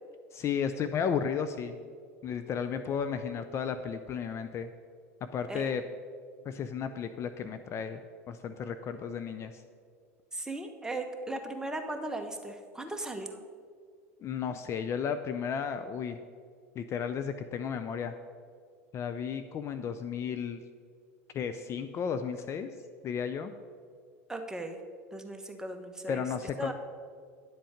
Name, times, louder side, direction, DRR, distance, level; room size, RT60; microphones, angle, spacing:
voice 1, 0.3-1.8 2.2-4.7 5.3-5.8 6.5-8.0 8.3-9.6 14.2-16.2 16.8-18.1 18.9-20.6 21.3-22.7 23.0-23.5 26.1-26.7, left 7 dB, 35° left, 9 dB, 0.5 m, -33 dB
voice 2, 10.3-13.4 24.3-24.8 25.1-26.3 26.6-26.7, right 2 dB, 10° right, 4 dB, 1.2 m, -37 dB
10.5 x 7.5 x 5.1 m, 2.1 s
hypercardioid pair, 85°, 8 cm